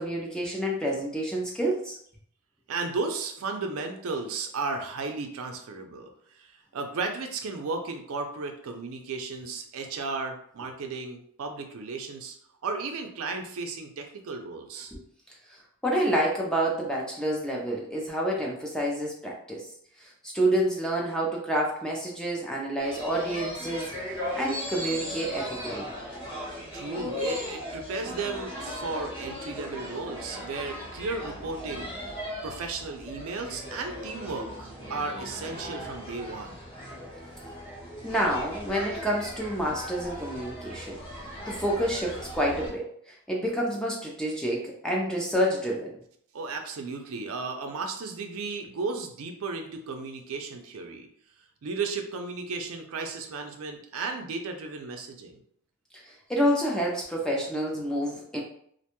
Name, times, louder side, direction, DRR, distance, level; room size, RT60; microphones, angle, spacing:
voice 1, 0.0-2.0 14.9-15.0 15.5-19.7 20.0-23.9 24.4-25.9 38.0-45.9 56.0-58.4, right 1 dB, 5° left, -2 dB, 0.4 m, -28 dB
voice 2, 2.7-6.1 6.4-12.3 12.6-14.9 26.7-31.9 32.4-36.6 46.3-51.1 51.6-55.4, right 4 dB, 70° right, 4 dB, 0.4 m, -34 dB
sound 1, 22.8-42.7, equal, 20° left, 0.8 m, -38 dB
2.5 x 2.2 x 2.9 m, 0.65 s
head